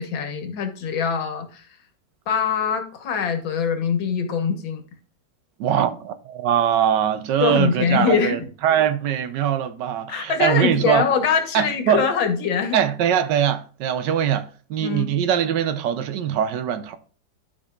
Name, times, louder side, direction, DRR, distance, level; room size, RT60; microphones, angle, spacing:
voice 1, 0.0-1.7 2.3-4.8 7.4-8.4 10.1-12.8 14.8-15.1, left 6 dB, 85° left, 2.0 m, -23 dB
voice 2, 5.6-11.0 11.5-12.1 12.7-17.0, right 9 dB, 70° right, 1.3 m, -22 dB
12.5 x 5.1 x 2.4 m
omnidirectional pair, 2.0 m